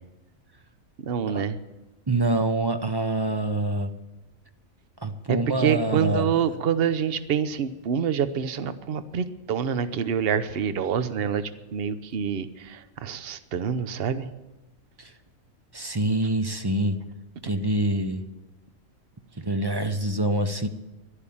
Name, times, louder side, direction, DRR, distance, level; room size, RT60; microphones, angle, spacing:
voice 1, 1.0-1.6 5.3-14.3, right 7 dB, 50° right, 12 dB, 0.9 m, -26 dB
voice 2, 2.1-3.9 5.0-6.3 15.0-15.1 15.7-17.0 17.4-18.3 19.4-20.7, right 2 dB, 25° right, 9 dB, 0.6 m, -26 dB
Drum, 5.9-8.3, right 8 dB, 90° right, 1.3 m, -39 dB
12.0 x 11.5 x 8.6 m, 1.0 s
omnidirectional pair, 1.4 m